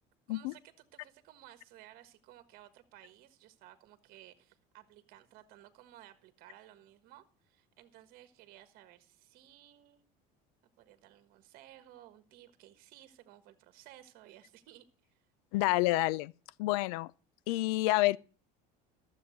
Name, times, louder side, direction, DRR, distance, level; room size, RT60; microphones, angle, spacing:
voice 1, 0.3-10.0 10.8-15.2, right 13 dB, 55° right, 1.4 m, -57 dB
voice 2, 15.5-16.3 16.6-17.1 17.5-18.2, left 19 dB, 85° left, 0.5 m, -28 dB
12.5 x 7.4 x 6.4 m
cardioid pair, 145°, 18 cm